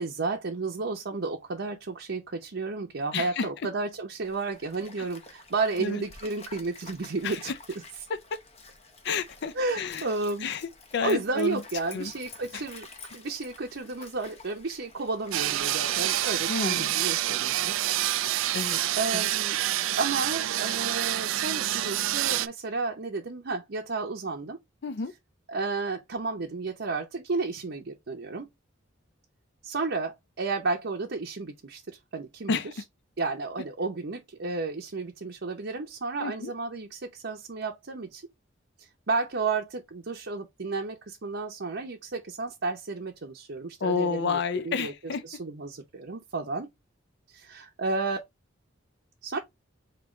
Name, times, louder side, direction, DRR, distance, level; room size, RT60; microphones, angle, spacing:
voice 1, 0.0-7.5 9.5-10.5 11.0-12.9 13.1-17.8 19.0-19.6 20.0-24.6 25.5-28.5 29.6-32.5 33.2-38.2 38.8-46.7 47.3-48.2 49.2-49.4, right 3 dB, 60° right, 0.7 m, -32 dB
voice 2, 3.1-3.5 5.0-5.1 5.8-6.0 7.2-7.6 8.1-8.4 9.0-10.0 10.4-11.6 11.9-12.1 12.5-12.6 16.5-17.0 18.5-18.8 19.1-19.3 24.8-25.1 32.5-32.7 36.2-36.5 43.8-45.2, left 5 dB, 60° left, 0.5 m, -30 dB
Stream, 4.2-17.3, left 3 dB, 35° left, 0.7 m, -49 dB
sound 1, 15.3-22.5, right 14 dB, 75° right, 0.3 m, -27 dB
5.0 x 3.0 x 3.1 m
head